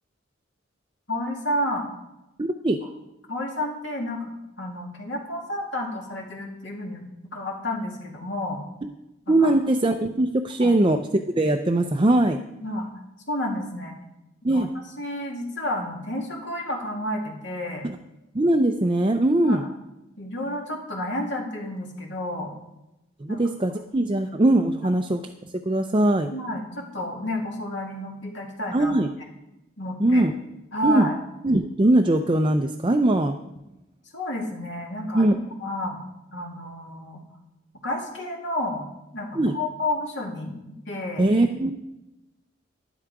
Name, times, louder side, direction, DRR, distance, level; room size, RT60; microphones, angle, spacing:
voice 1, 1.1-1.9 3.3-4.3 4.6-7.0 7.3-8.6 9.3-9.5 10.6-10.7 12.6-12.9 13.3-14.0 14.5-14.7 15.0-17.9 19.4-19.7 20.2-22.5 23.3-23.4 26.3-29.0 29.8-30.3 30.7-31.1 34.1-35.4 35.6-36.0 36.3-37.2 37.8-38.8 39.1-40.6 40.9-41.3, left 1 dB, 65° left, -1 dB, 2.4 m, -30 dB
voice 2, 2.4-2.8 9.3-11.0 11.4-12.4 14.4-14.7 17.8-18.0 18.3-19.6 23.2-25.2 25.7-26.3 28.7-29.1 30.0-30.3 30.8-31.1 31.4-33.3 35.1-35.4 39.3-39.5 41.2-41.7, right 1 dB, 25° right, 4 dB, 0.5 m, -21 dB
11.5 x 11.0 x 4.8 m, 0.95 s
head